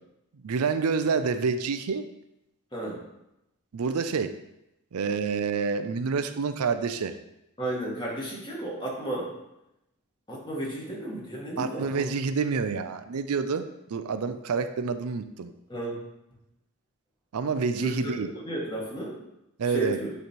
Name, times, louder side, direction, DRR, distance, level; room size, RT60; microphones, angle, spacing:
voice 1, 0.4-2.1 3.7-4.4 4.9-7.1 11.6-15.5 17.3-18.3 19.6-20.0, right 5 dB, 85° right, 10 dB, 0.5 m, -28 dB
voice 2, 7.6-9.3 10.3-12.1 15.7-16.0 17.8-18.1 18.4-19.2 19.7-20.1, right 1 dB, 20° left, -3 dB, 1.7 m, -33 dB
9.2 x 3.2 x 4.4 m, 0.87 s
head